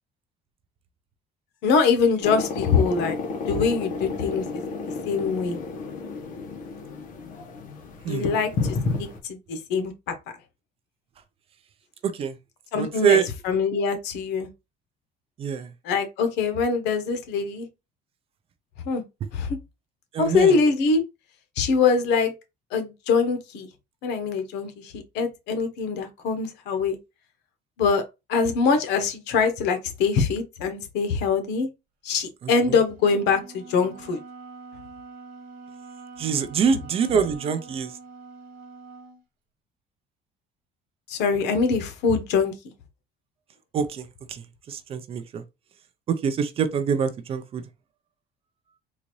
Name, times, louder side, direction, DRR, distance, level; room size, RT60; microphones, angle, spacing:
voice 1, 1.6-3.2 3.5-4.6 5.0-5.6 8.1-9.9 12.7-14.5 15.8-17.7 18.8-19.0 19.3-19.6 20.2-21.0 21.6-22.3 22.7-23.7 24.0-27.0 27.8-28.0 28.3-31.7 32.0-34.2 41.1-42.5, left 5 dB, 80° left, 1.0 m, -23 dB
sound 1, 2.2-9.2, left 4 dB, 50° left, 1.0 m, -31 dB
voice 2, 12.0-12.4 12.7-13.3 15.4-15.7 19.2-19.3 20.1-20.6 32.4-32.8 36.2-37.9 43.7-45.4 46.1-47.7, right 7 dB, 35° right, 0.4 m, -25 dB
Wind instrument woodwind instrument, 32.9-39.2, right 4 dB, 55° right, 1.4 m, -44 dB
3.9 x 2.5 x 3.0 m
cardioid pair, 170°, 17 cm